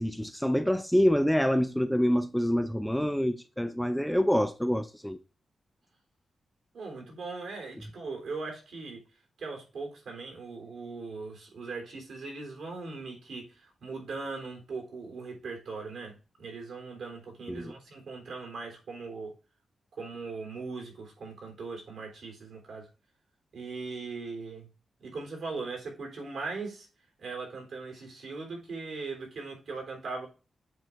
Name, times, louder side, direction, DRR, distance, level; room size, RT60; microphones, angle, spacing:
voice 1, 0.0-5.2 17.5-17.7, equal, ahead, 0.5 m, -26 dB
voice 2, 6.7-9.0 9.4-19.3 19.9-22.9 23.5-24.7 25.0-26.9 27.2-30.3, right 4 dB, 70° right, 3.3 m, -39 dB
7.6 x 3.8 x 4.5 m
wide cardioid pair, 155°, 0 cm